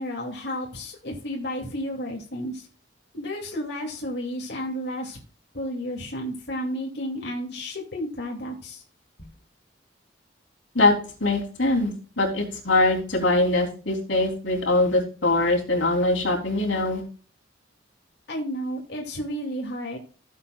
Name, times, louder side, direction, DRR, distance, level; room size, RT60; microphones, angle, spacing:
voice 1, 0.0-2.7 3.1-5.2 5.5-8.8 9.2-9.3 18.3-20.0, equal, 65° left, -1 dB, 2.5 m, -32 dB
voice 2, 11.2-17.0, left 2 dB, 90° left, 0 dB, 3.4 m, -22 dB
16.5 x 8.0 x 2.4 m, 0.40 s
head